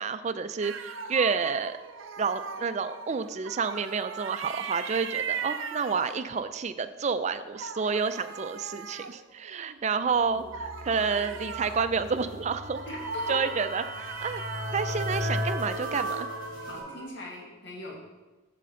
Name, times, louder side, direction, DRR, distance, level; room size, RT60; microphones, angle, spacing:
voice 1, 0.0-1.8 2.2-12.8 13.3-14.4 14.7-16.3, right 5 dB, 35° right, 11 dB, 0.4 m, -29 dB
sound 1, 0.6-6.6 7.4-9.8 10.5-17.1, right 5 dB, 80° right, 0.6 m, -39 dB
voice 2, 10.2-10.5 12.9-13.3 16.6-18.0, left 2 dB, 60° left, -1 dB, 1.5 m, -41 dB
sound 2, 10.3-16.8, left 1 dB, 85° left, 2.7 m, -36 dB
8.6 x 7.6 x 3.8 m, 1.2 s
head